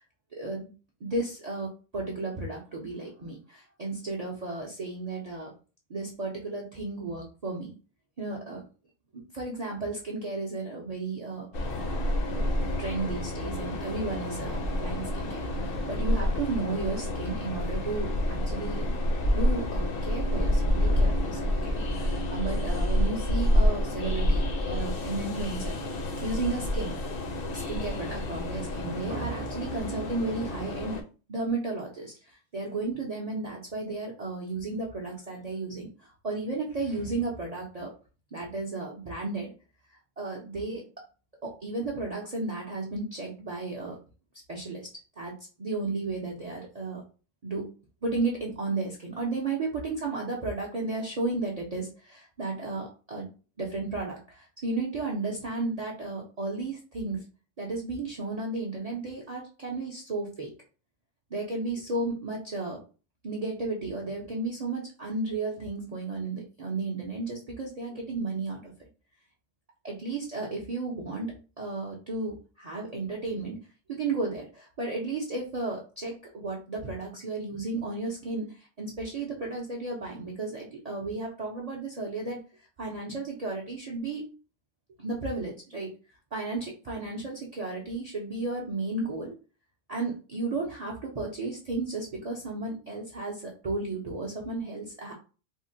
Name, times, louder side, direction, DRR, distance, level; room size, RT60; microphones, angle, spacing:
voice 1, 0.3-0.7 1.0-5.5 5.9-7.7 8.2-8.6 9.1-11.5 12.3-18.9 19.3-27.0 27.4-31.0 31.3-37.9 38.3-39.5 40.2-40.9 41.4-44.0 44.5-44.9 45.2-47.0 47.4-47.7 48.0-53.3 53.6-57.3 57.6-60.5 61.3-62.8 63.2-68.7 69.8-73.6 73.9-82.4 82.8-84.3 85.0-85.9 86.3-89.3 89.9-95.1, right 3 dB, 45° right, -2 dB, 0.5 m, -34 dB
Train, 11.5-31.0, left 1 dB, 55° left, 0.7 m, -28 dB
3.6 x 2.1 x 2.6 m, 0.35 s
omnidirectional pair, 1.3 m